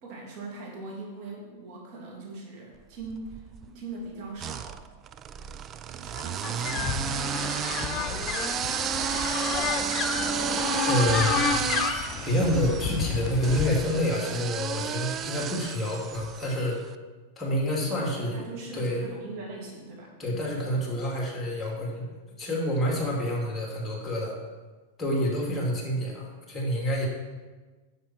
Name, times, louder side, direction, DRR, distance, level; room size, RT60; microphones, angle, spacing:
voice 1, 0.0-4.8 5.8-9.6 17.9-20.6, right 3 dB, 50° right, -3 dB, 3.0 m, -42 dB
sound 1, 3.0-3.7 4.4-16.7, right 9 dB, 30° right, 0.4 m, -32 dB
sound 2, 6.4-13.8, left 6 dB, 30° left, 1.0 m, -30 dB
voice 2, 10.8-11.4 11.8-16.8 17.4-18.4 18.7-19.0 20.2-22.1 22.4-24.4 25.0-27.1, equal, 15° left, -2 dB, 2.7 m, -28 dB
10.0 x 7.4 x 4.5 m, 1.3 s
hypercardioid pair, 110°, 0 cm